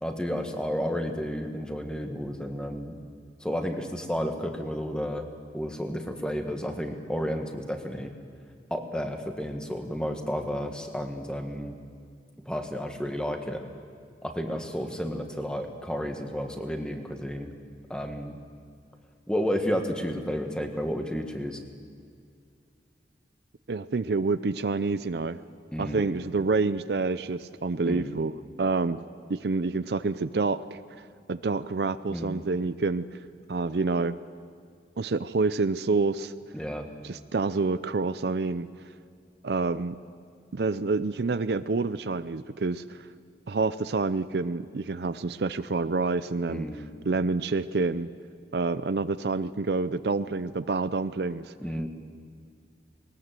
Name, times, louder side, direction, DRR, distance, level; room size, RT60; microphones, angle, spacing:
voice 1, 0.0-3.0 3.4-5.3 5.5-8.2 8.7-11.8 12.4-13.6 14.2-17.5 17.9-18.4 19.3-21.6 25.7-26.0 27.9-28.2 32.1-32.3 36.5-36.9 46.5-46.9 51.6-51.9, equal, 5° left, 4 dB, 1.6 m, -32 dB
voice 2, 23.7-25.4 25.8-29.0 29.3-30.8 31.3-33.0 33.5-34.2 35.0-36.3 37.0-38.7 39.4-40.0 40.5-43.0 43.5-46.7 47.0-48.1 48.5-51.5, right 3 dB, 65° right, 13 dB, 0.5 m, -27 dB
20.5 x 19.0 x 7.6 m, 2.2 s
head